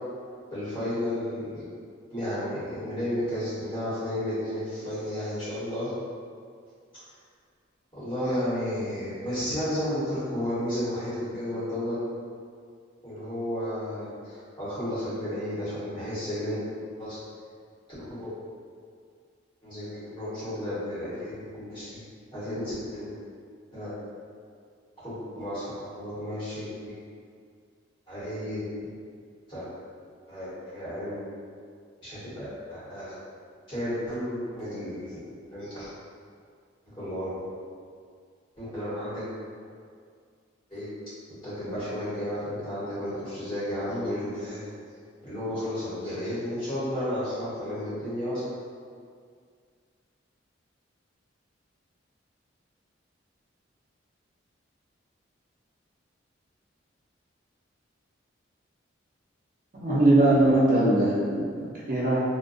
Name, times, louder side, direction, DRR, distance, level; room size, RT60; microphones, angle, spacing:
voice 1, 0.5-1.6 2.1-5.9 7.9-12.0 13.0-16.6 17.0-17.2 18.0-18.3 19.6-22.0 22.3-23.1 23.7-23.9 25.0-27.0 28.1-28.9 29.5-29.7 30.3-31.2 32.0-33.2 33.7-35.2 35.5-35.9 37.0-37.3 38.6-39.3 40.7-40.9 41.4-44.6 45.2-48.4, left 1 dB, 25° left, -13 dB, 1.1 m, -32 dB
voice 2, 59.8-62.2, right 1 dB, 45° right, -7 dB, 0.4 m, -21 dB
2.5 x 2.2 x 2.4 m, 2.1 s
head